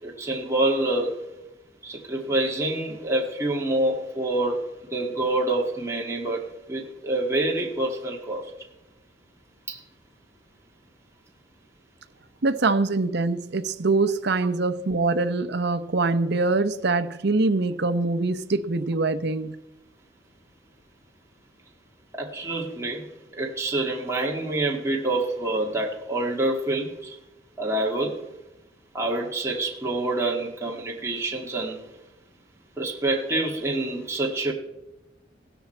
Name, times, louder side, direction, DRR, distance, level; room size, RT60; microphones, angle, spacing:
voice 1, 0.0-1.2 1.8-4.6 4.9-8.5 9.7-9.8 22.1-23.1 23.4-27.2 27.6-28.2 28.9-31.8 32.8-34.5, right 2 dB, 15° right, -1 dB, 1.9 m, -27 dB
voice 2, 12.4-19.6, right 3 dB, 60° right, 10 dB, 0.8 m, -24 dB
16.5 x 13.0 x 4.4 m, 0.97 s
head